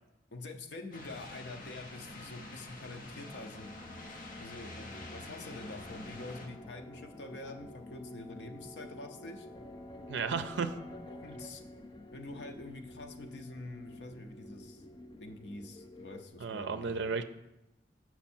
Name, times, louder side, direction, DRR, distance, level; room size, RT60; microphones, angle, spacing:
voice 1, 0.3-3.7 4.4-9.5 11.1-11.6 12.1-14.8 15.2-17.2, left 2 dB, 75° left, 5 dB, 0.7 m, -46 dB
sound 1, 0.9-6.5, left 2 dB, 50° left, 1.0 m, -47 dB
Wind instrument woodwind instrument, 3.2-11.5, left 5 dB, ahead, 0.8 m, -57 dB
sound 2, 4.8-16.3, left 1 dB, 25° left, 0.5 m, -50 dB
voice 2, 10.1-10.7 16.4-17.2, right 5 dB, 75° right, 10 dB, 0.4 m, -33 dB
7.0 x 5.9 x 4.3 m, 0.93 s
head